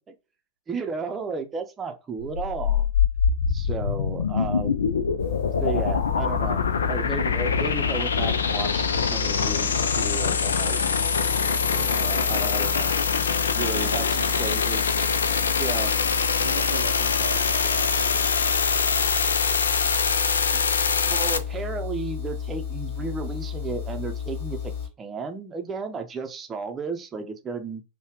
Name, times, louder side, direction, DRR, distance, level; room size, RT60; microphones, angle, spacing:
voice 1, 0.7-2.9 3.5-4.8 5.6-6.6 6.9-10.8 11.7-12.9 13.5-14.8 15.5-15.9 21.0-27.8, right 4 dB, 20° right, 0.6 m, -33 dB
sound 1, 2.2-21.4, left 6 dB, 70° left, 0.4 m, -24 dB
sound 2, 5.2-24.9, left 8 dB, 55° left, 1.2 m, -33 dB
voice 2, 13.7-14.5 16.4-20.2, right 8 dB, 60° right, 0.5 m, -40 dB
5.5 x 2.2 x 3.0 m
figure-of-eight pair, 90°, 0 cm